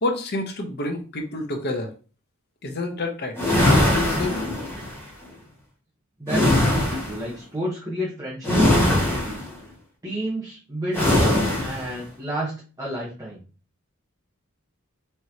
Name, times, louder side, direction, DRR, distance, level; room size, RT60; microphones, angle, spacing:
voice 1, 0.0-1.9 2.6-3.4 3.6-4.4, left 2 dB, 50° left, 4 dB, 0.9 m, -28 dB
sound 1, 3.4-5.0 6.3-7.2 8.4-9.5 10.9-11.9, left 1 dB, 10° left, 1.5 m, -21 dB
voice 2, 6.2-9.7 10.0-13.4, right 1 dB, 15° right, -6 dB, 1.1 m, -31 dB
4.4 x 3.0 x 2.8 m, 0.36 s
head